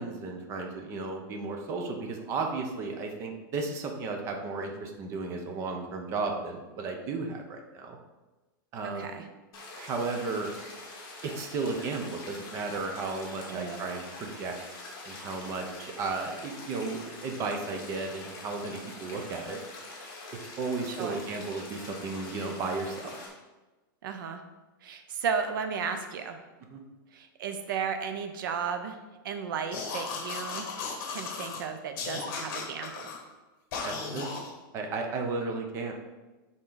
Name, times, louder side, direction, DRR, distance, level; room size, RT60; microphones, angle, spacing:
voice 1, 0.0-8.0 8.7-9.2 9.8-10.5 11.2-14.6 15.0-19.6 20.6-23.2 26.7-26.8 33.8-34.3 34.7-35.9, right 3 dB, 25° right, 3 dB, 0.8 m, -34 dB
voice 2, 8.8-9.2 13.5-13.8 20.9-21.2 24.0-24.4 24.8-26.4 27.1-29.0 29.2-30.7 31.1-33.1, right 6 dB, 70° right, 7 dB, 0.7 m, -34 dB
sound 1, 9.5-23.3, left 2 dB, 30° left, 2.0 m, -44 dB
sound 2, 29.7-31.6 32.0-33.2 33.7-34.5, left 5 dB, 45° left, 1.7 m, -36 dB
10.0 x 3.9 x 3.9 m, 1.2 s
supercardioid pair, 170°, 12 cm